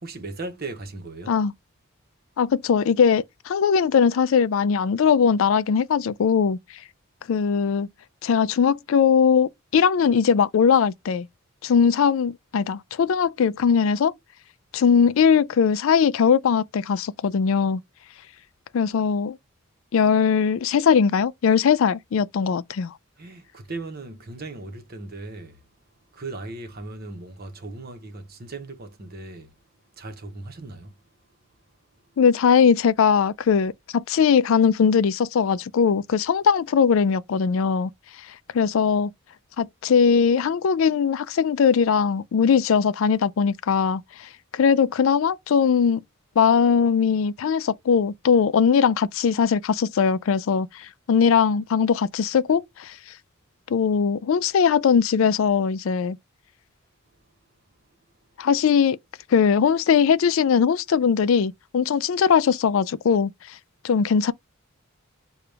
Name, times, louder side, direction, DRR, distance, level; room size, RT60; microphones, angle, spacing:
voice 1, 0.0-1.4 23.2-25.6 26.1-29.5 30.0-30.9, right 2 dB, 45° right, 0.9 m, -37 dB
voice 2, 2.4-6.6 7.3-7.9 8.2-11.3 11.6-14.1 14.7-17.8 18.7-19.4 19.9-22.9 32.2-37.9 38.5-39.1 39.6-46.0 46.4-53.0 53.7-56.2 58.4-59.0 59.3-63.6 63.8-64.3, left 6 dB, 65° left, 0.4 m, -20 dB
6.7 x 2.3 x 3.3 m
head